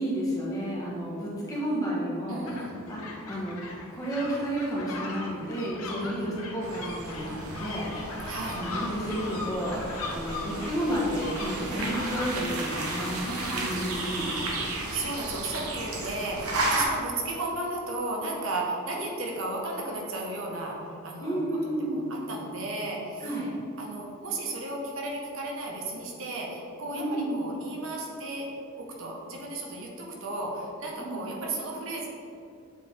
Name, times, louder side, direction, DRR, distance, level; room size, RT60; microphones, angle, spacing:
voice 1, 0.0-2.4 2.9-3.6 3.9-7.9 8.5-9.8 10.1-14.3 21.2-22.0 23.2-23.5 26.9-27.5 31.0-31.3, right 1 dB, 15° left, -5 dB, 1.3 m, -31 dB
voice 2, 2.3-2.8 6.0-6.3 8.2-8.6 11.6-12.0 13.2-21.4 21.8-23.5 23.8-28.5 28.8-32.1, right 2 dB, 65° right, -2 dB, 1.1 m, -35 dB
sound 1, 2.5-15.0, left 3 dB, 75° left, 0.9 m, -40 dB
sound 2, 6.6-16.8, right 2 dB, 90° right, 1.0 m, -34 dB
7.5 x 4.6 x 3.6 m, 2.7 s
head